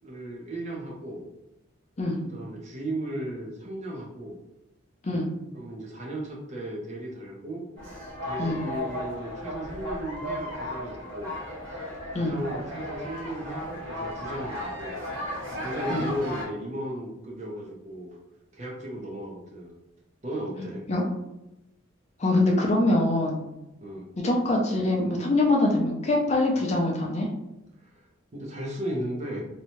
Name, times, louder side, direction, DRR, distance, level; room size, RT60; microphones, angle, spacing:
voice 1, 0.0-1.2 2.3-4.4 5.5-7.6 8.2-11.3 12.1-15.0 15.5-18.2 18.5-19.8 20.2-20.8 23.8-24.1 27.9-28.0 28.3-29.4, right 1 dB, 35° right, -2 dB, 0.6 m, -36 dB
sound 1, 7.8-16.4, left 1 dB, 65° right, 1.0 m, -35 dB
voice 2, 22.2-23.4 24.2-27.3, left 2 dB, 30° left, -1 dB, 0.4 m, -24 dB
2.7 x 2.2 x 2.9 m, 0.92 s
head